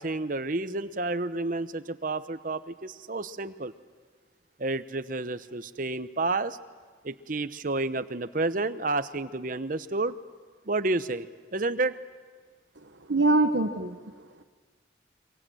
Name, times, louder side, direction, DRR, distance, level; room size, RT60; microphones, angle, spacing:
voice 1, 0.0-3.7 4.6-6.6 7.0-10.1 10.7-11.3 11.5-11.9, right 2 dB, 50° right, 12 dB, 0.9 m, -30 dB
voice 2, 12.8-14.4, right 2 dB, 85° right, 6 dB, 1.2 m, -26 dB
27.5 x 24.5 x 7.8 m, 1.5 s
head